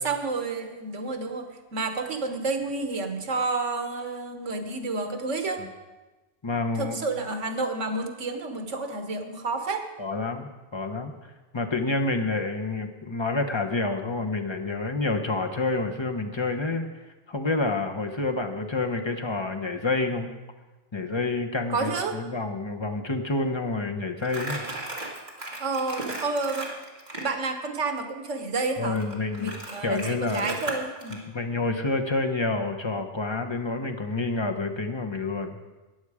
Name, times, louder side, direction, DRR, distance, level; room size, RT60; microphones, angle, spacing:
voice 1, 0.0-5.6 6.7-9.9 21.7-22.2 25.6-26.7 27.2-28.9 29.4-31.2, right 3 dB, 80° right, 6 dB, 1.5 m, -30 dB
voice 2, 6.4-7.0 10.0-11.1 11.5-16.9 17.3-20.3 20.9-24.6 28.8-29.5 29.8-30.5 31.1-35.6, left 3 dB, 25° left, 4 dB, 0.8 m, -28 dB
Crumpling crinkling, 24.2-27.3 28.9-31.2, right 2 dB, 35° right, 1.9 m, -36 dB
14.0 x 9.8 x 4.9 m, 1.2 s
omnidirectional pair, 1.2 m